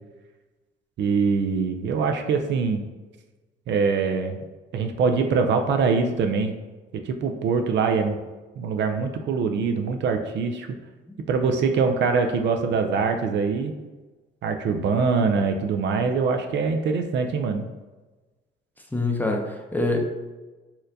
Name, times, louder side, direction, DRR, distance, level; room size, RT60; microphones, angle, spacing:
voice 1, 1.0-2.8 3.7-4.4 4.7-6.6 6.9-8.2 8.6-10.8 11.3-13.7 14.4-17.7, right 5 dB, 65° right, 5 dB, 0.4 m, -23 dB
voice 2, 18.9-20.0, left 2 dB, 10° left, 2 dB, 0.5 m, -25 dB
4.2 x 2.5 x 2.6 m, 1.2 s
cardioid pair, 90°, 20 cm